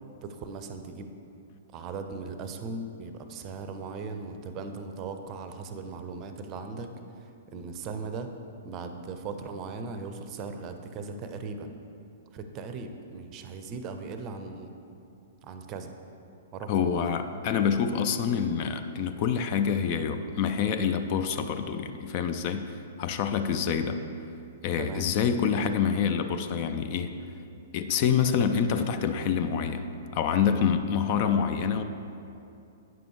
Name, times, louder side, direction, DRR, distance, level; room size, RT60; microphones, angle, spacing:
voice 1, 0.2-1.1 1.7-8.3 8.6-11.7 12.3-14.7 15.4-15.9 16.5-17.2 18.3-18.4 24.8-25.1, right 4 dB, 30° right, 7 dB, 0.6 m, -38 dB
voice 2, 16.7-24.0 24.6-27.1 27.7-29.9 30.1-31.8, left 7 dB, 40° left, 8 dB, 0.4 m, -27 dB
9.1 x 6.8 x 3.2 m, 2.6 s
figure-of-eight pair, 110°, 0 cm